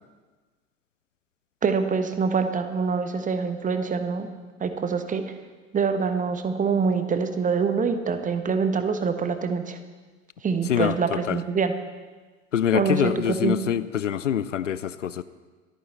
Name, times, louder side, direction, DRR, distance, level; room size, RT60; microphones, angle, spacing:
voice 1, 1.6-4.3 4.6-5.2 5.7-9.8 10.4-11.7 12.7-13.6, right 5 dB, 20° right, 8 dB, 1.2 m, -25 dB
voice 2, 10.7-11.4 12.5-15.2, left 9 dB, 80° left, 16 dB, 0.6 m, -25 dB
26.5 x 9.3 x 4.2 m, 1.4 s
figure-of-eight pair, 70°, 37 cm